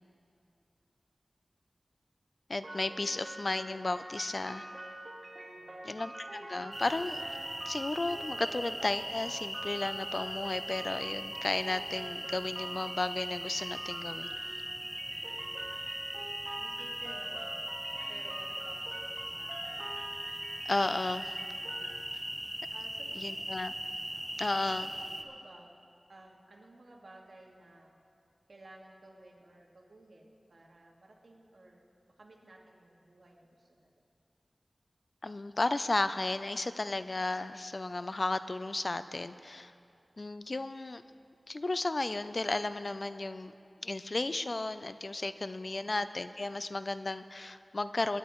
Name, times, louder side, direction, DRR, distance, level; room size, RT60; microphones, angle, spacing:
voice 1, 2.5-4.6 5.8-7.2 7.7-14.3 20.7-21.3 23.2-23.7 24.4-24.9 35.2-39.7 40.2-41.0 41.5-43.5 43.8-48.2, left 2 dB, 55° left, 12 dB, 0.4 m, -34 dB
sound 1, 2.6-21.9, right 1 dB, 60° right, 2.1 m, -46 dB
voice 2, 5.5-6.0 8.4-8.5 15.0-15.3 16.6-17.5 18.1-19.9 22.7-23.5 24.1-25.7 26.1-27.9 28.5-31.8 32.2-33.9 45.6-46.0, right 2 dB, 80° right, -1 dB, 1.9 m, -55 dB
sound 2, 6.7-25.2, right 1 dB, 15° right, 1.0 m, -40 dB
24.0 x 10.0 x 3.1 m, 2.6 s
wide cardioid pair, 65°, 0 cm